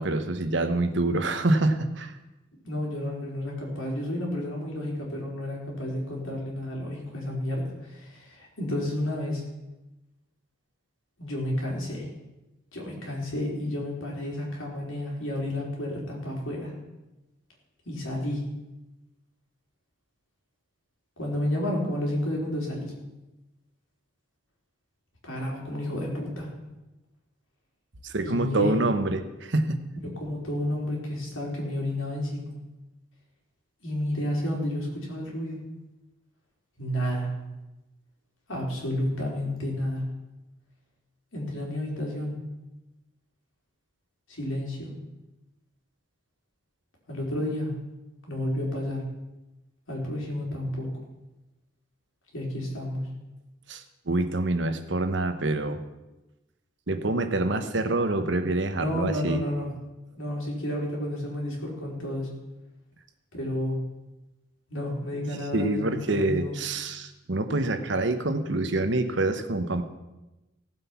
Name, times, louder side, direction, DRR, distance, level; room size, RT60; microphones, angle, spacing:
voice 1, 0.0-2.2 28.0-29.8 53.7-55.8 56.9-59.4 65.5-69.8, right 2 dB, 65° right, 9 dB, 1.1 m, -26 dB
voice 2, 2.6-9.4 11.2-12.1 12.7-16.7 17.8-18.4 21.2-22.9 25.2-26.5 28.2-28.8 30.2-32.6 33.8-35.6 36.8-37.3 38.5-40.1 41.3-42.4 44.3-44.9 47.1-47.7 48.3-49.1 49.9-50.9 52.3-53.1 58.7-59.7 60.2-62.3 63.3-63.8 64.7-66.5, left 1 dB, 85° left, -2 dB, 4.1 m, -31 dB
16.5 x 7.6 x 5.9 m, 1.0 s
head